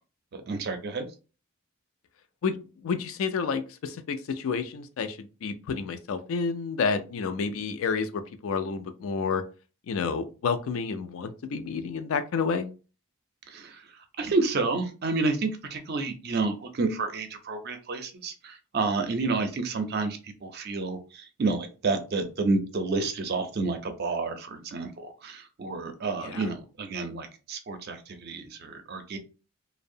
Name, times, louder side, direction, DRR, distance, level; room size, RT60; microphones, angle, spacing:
voice 1, 0.3-1.1 13.5-13.8 14.2-29.2, right 3 dB, 50° right, 7 dB, 0.4 m, -30 dB
voice 2, 2.8-9.4 9.9-12.7 26.2-26.5, left 5 dB, 75° left, 10 dB, 0.4 m, -30 dB
2.6 x 2.0 x 2.6 m, 0.33 s
head